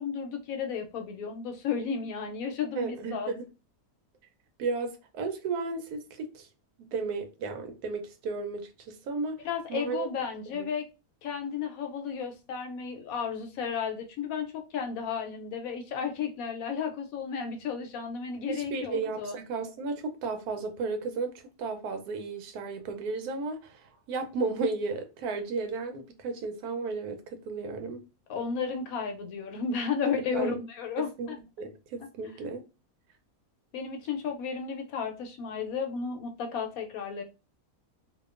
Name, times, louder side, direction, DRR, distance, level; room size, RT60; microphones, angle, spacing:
voice 1, 0.0-3.3 9.4-10.9 11.2-19.4 28.3-31.4 33.7-37.2, left 6 dB, 75° left, 1.0 m, -33 dB
voice 2, 2.8-3.4 4.6-6.5 6.9-10.1 10.5-10.7 18.5-28.0 30.3-30.6 31.0-31.3 31.6-32.6, right 4 dB, 85° right, 1.1 m, -34 dB
2.8 x 2.2 x 2.4 m
omnidirectional pair, 1.6 m